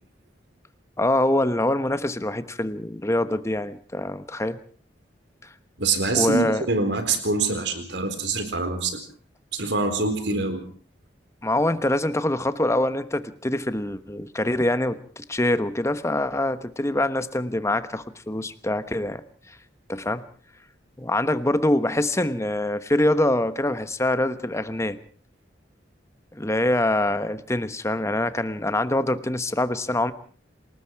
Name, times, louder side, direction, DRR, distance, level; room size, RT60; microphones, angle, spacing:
voice 1, 1.0-4.6 6.1-6.6 11.4-19.2 19.5-19.6 19.9-20.2 21.0-25.0 26.3-30.1, left 1 dB, 15° left, 12 dB, 1.2 m, -24 dB
voice 2, 5.8-9.0 9.5-10.6, right 3 dB, 75° right, 8 dB, 4.3 m, -25 dB
28.5 x 19.5 x 4.7 m, 0.43 s
head